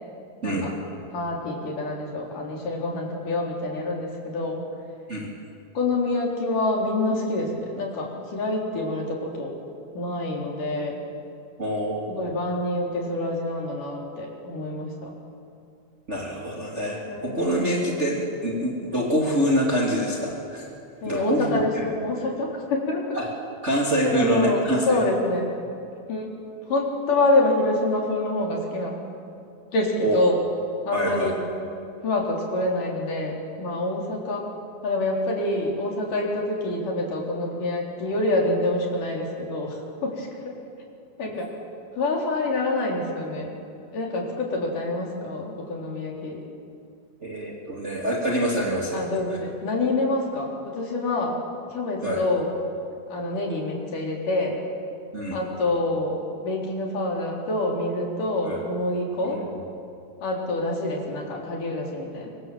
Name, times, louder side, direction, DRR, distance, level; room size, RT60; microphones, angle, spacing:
voice 1, 0.4-0.7 1.1-4.6 5.8-9.5 9.9-11.0 12.1-15.1 17.1-17.8 21.0-23.2 24.0-25.5 26.1-26.3 26.7-29.0 29.7-30.4 30.9-31.3 32.0-34.4 34.8-40.5 41.2-41.5 42.0-43.6 43.9-46.4 48.9-51.4 51.7-52.5 53.1-54.6 55.3-59.4 60.2-62.3, left 2 dB, 85° left, -1 dB, 5.6 m, -26 dB
voice 2, 11.6-12.0 16.1-20.6 21.1-21.6 23.1-23.3 23.6-25.1 30.0-30.2 30.9-31.3 47.2-49.0 52.0-52.2 55.1-55.4 58.5-58.6 59.2-59.4, equal, 20° right, -3 dB, 3.1 m, -25 dB
25.0 x 24.5 x 7.7 m, 2.5 s
omnidirectional pair, 3.6 m